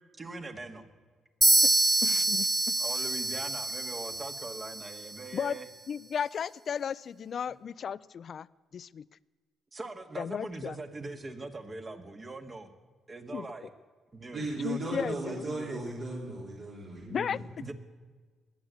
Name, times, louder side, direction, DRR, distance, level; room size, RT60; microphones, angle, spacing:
voice 1, 0.2-0.9 2.8-5.7 7.5-7.6 9.7-12.7 13.1-13.7 14.1-15.8 17.6-17.7, right 2 dB, 30° right, 6 dB, 1.8 m, -41 dB
sound 1, 1.4-5.2, right 2 dB, 15° right, 0.6 m, -26 dB
voice 2, 2.0-2.7 5.3-5.6 5.9-8.5 8.7-9.0 10.2-10.8 13.3-13.5 14.6-15.5 17.1-17.4, left 7 dB, 55° left, 19 dB, 0.4 m, -34 dB
voice 3, 14.3-17.4, right 2 dB, 55° right, -5 dB, 3.7 m, -36 dB
21.0 x 8.2 x 8.2 m, 1.5 s
cardioid pair, 90°, 0 cm